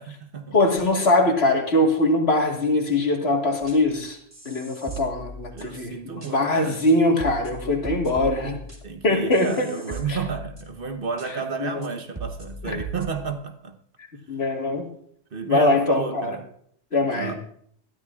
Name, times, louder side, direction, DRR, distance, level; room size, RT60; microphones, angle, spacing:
voice 1, 0.0-0.6 5.5-6.8 8.8-13.8 15.3-16.4 17.0-17.3, right 5 dB, 50° right, 1.1 m, -32 dB
voice 2, 0.5-4.2 4.5-8.6 9.0-9.7 10.1-10.2 11.6-11.9 12.6-12.8 14.3-14.9 15.5-16.4 16.9-17.3, left 2 dB, 55° left, 1.9 m, -22 dB
sound 1, 3.6-4.0 4.3-5.8 6.2-6.3 6.9-7.0 7.2-10.9 11.2-11.3 11.8-11.9 12.2-13.1, right 3 dB, 20° right, 1.8 m, -38 dB
20.0 x 12.5 x 2.4 m
omnidirectional pair, 1.3 m